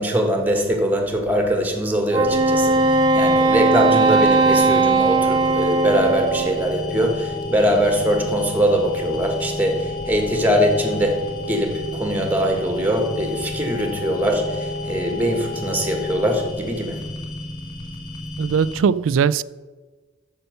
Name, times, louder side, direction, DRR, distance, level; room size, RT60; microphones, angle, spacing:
voice 1, 0.0-17.0, equal, 10° right, 1.5 m, -22 dB
Wind instrument woodwind instrument, 2.1-6.7, right 3 dB, 25° right, 0.7 m, -18 dB
sound 1, 2.3-18.8, left 1 dB, 25° left, 1.6 m, -34 dB
sound 2, 5.5-16.5, left 3 dB, 85° left, 0.9 m, -33 dB
voice 2, 18.4-19.4, right 6 dB, 70° right, 0.3 m, -19 dB
8.7 x 6.7 x 6.7 m
head